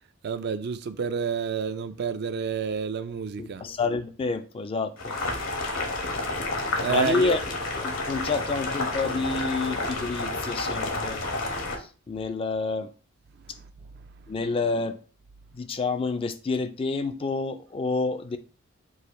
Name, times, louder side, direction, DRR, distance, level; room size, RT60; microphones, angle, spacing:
voice 1, 0.2-3.6 6.8-7.4, right 6 dB, 50° right, 0.4 m, -29 dB
voice 2, 3.4-5.1 6.9-7.4 7.7-11.2 11.8-12.9 14.3-15.0 15.5-18.4, left 4 dB, 25° left, 0.3 m, -28 dB
Boiling, 5.0-11.8, left 2 dB, 75° left, 1.0 m, -30 dB
4.8 x 2.5 x 4.1 m
head